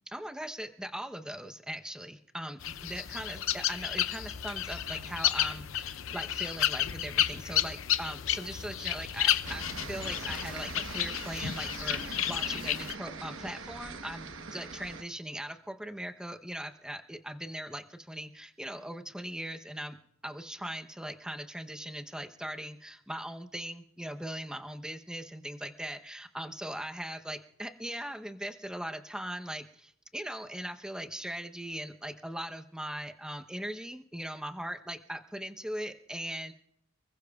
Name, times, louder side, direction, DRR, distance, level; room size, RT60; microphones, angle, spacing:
voice 1, 0.1-20.0 20.2-36.5, right 1 dB, 5° right, 5 dB, 0.8 m, -40 dB
sound 1, 2.6-12.9, left 11 dB, 70° left, 0.6 m, -32 dB
sound 2, 9.4-15.0, right 4 dB, 65° right, 1.1 m, -42 dB
29.0 x 20.5 x 2.4 m, 0.75 s
head